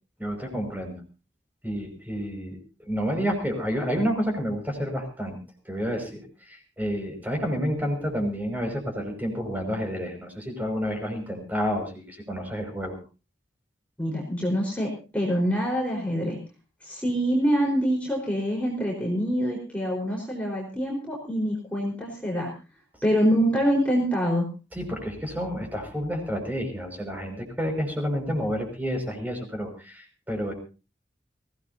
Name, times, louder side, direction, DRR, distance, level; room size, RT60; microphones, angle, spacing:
voice 1, 0.2-1.0 1.6-2.6 2.9-5.4 5.6-13.0 24.7-30.5, equal, 10° right, 3 dB, 5.8 m, -29 dB
voice 2, 14.0-16.4 16.8-22.5 23.0-24.5, equal, 5° left, -2 dB, 4.5 m, -25 dB
24.0 x 17.0 x 2.8 m, 0.32 s
head